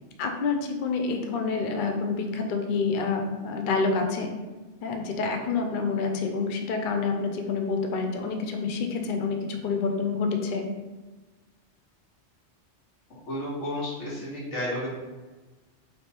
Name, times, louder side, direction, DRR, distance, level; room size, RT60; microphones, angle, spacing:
voice 1, 0.2-4.3 4.8-10.7, left 4 dB, 60° left, 4 dB, 0.6 m, -28 dB
voice 2, 13.3-14.9, left 1 dB, 90° left, -6 dB, 1.6 m, -32 dB
3.2 x 2.9 x 4.3 m, 1.2 s
omnidirectional pair, 1.2 m